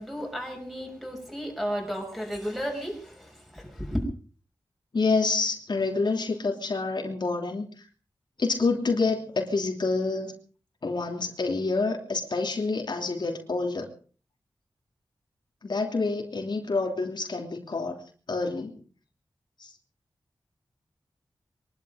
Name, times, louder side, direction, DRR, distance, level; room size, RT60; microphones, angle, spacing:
voice 1, 0.0-4.0, equal, ahead, 6.1 m, -33 dB
voice 2, 4.9-7.9 8.4-10.3 10.8-13.9 15.6-18.0 18.3-18.8 19.6-19.7, left 3 dB, 60° left, 3.0 m, -27 dB
23.0 x 12.0 x 5.1 m
wide cardioid pair, 80°, 9 cm